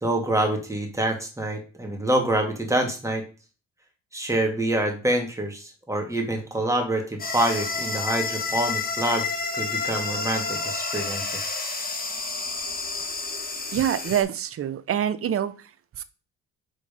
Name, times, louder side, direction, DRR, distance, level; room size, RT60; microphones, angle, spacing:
voice 1, 0.0-3.2 4.1-9.3 9.5-11.5, right 1 dB, 10° right, 1.9 m, -26 dB
sound 1, 7.2-14.2, left 4 dB, 30° left, 1.3 m, -30 dB
voice 2, 13.7-15.5 16.0-16.1, right 9 dB, 50° right, 0.6 m, -25 dB
5.2 x 3.8 x 5.3 m
cardioid pair, 90°, 30 cm